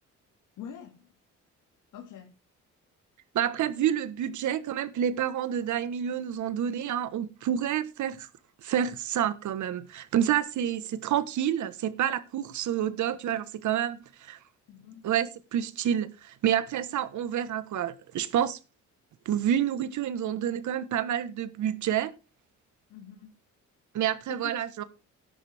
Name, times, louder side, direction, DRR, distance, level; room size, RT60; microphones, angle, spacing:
voice 1, 0.6-1.1 1.9-2.3 14.7-15.0 22.9-23.3 24.3-24.6, left 8 dB, 80° left, 2.6 m, -44 dB
voice 2, 3.3-8.3 8.6-14.4 15.0-18.6 19.2-22.1 23.9-24.8, right 10 dB, 75° right, 1.5 m, -28 dB
13.0 x 10.5 x 3.6 m
cardioid pair, 90°, 30 cm